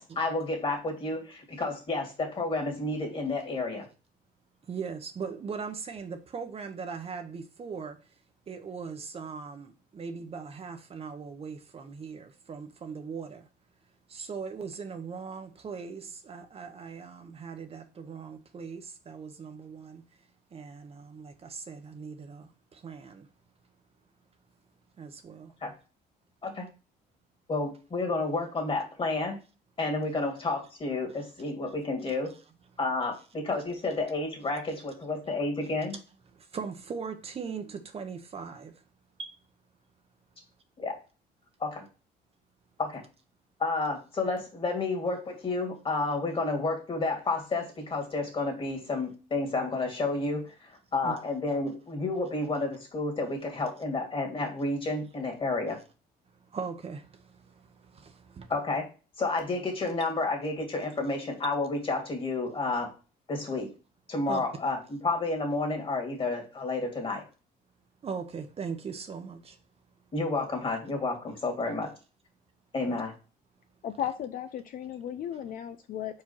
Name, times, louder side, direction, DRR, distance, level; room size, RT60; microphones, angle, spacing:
voice 1, 0.0-3.9 25.6-25.7 26.4-26.7 27.5-29.3 29.8-32.3 32.8-35.9 40.8-40.9 41.6-41.8 42.8-43.0 43.6-50.5 50.9-55.8 58.5-58.9 59.2-62.9 63.3-63.7 64.1-67.2 70.1-71.9 72.7-73.1, left 3 dB, 30° left, 2.2 m, -30 dB
voice 2, 4.6-8.1 8.5-13.5 14.1-20.2 20.5-23.3 25.0-25.5 31.1-31.3 32.3-32.4 36.3-38.8 39.2-39.4 51.0-51.1 56.3-58.5 64.3-64.4 68.0-69.6 72.8-73.0, right 5 dB, 35° right, 0.9 m, -40 dB
voice 3, 73.8-76.2, left 10 dB, 55° left, 0.5 m, -35 dB
4.8 x 4.5 x 4.4 m
cardioid pair, 110°, 17 cm